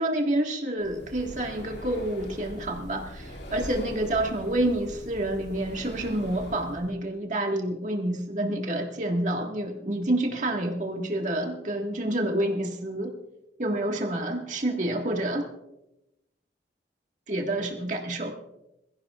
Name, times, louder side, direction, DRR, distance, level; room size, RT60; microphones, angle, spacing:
voice 1, 0.0-13.1 13.6-15.5 17.3-18.3, right 1 dB, 40° right, 1 dB, 1.8 m, -28 dB
Breathing, 0.8-6.9, equal, 70° left, 2.6 m, -42 dB
22.5 x 15.0 x 2.5 m, 0.90 s
head